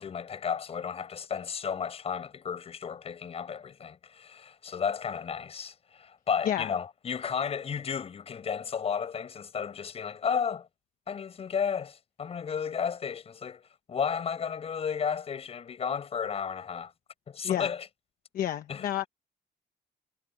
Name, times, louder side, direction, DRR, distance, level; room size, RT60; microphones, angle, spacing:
voice 1, 0.0-10.7 11.1-16.9 17.3-17.9 18.7-18.9, left 7 dB, 40° left, 6.4 m, -33 dB
voice 2, 18.3-19.0, left 11 dB, 65° left, 1.0 m, -29 dB
cardioid pair, 150°, 16 cm